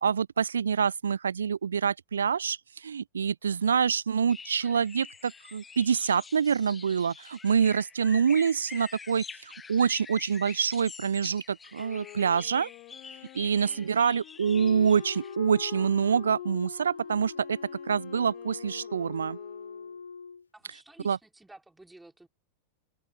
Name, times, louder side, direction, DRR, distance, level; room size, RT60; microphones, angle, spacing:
voice 1, 0.0-12.7 13.3-17.6 17.8-19.4 21.0-21.2, right 7 dB, 70° right, 0.3 m, -26 dB
sound 1, 4.3-15.4, left 5 dB, 15° left, 1.3 m, -46 dB
Wind instrument woodwind instrument, 11.7-20.0, left 21 dB, 40° left, 4.5 m, -48 dB
voice 2, 13.5-13.9 20.5-22.3, right 2 dB, 5° right, 4.3 m, -54 dB
Wind instrument woodwind instrument 2, 14.3-20.5, left 5 dB, 75° left, 1.2 m, -43 dB
figure-of-eight pair, 90°, 0 cm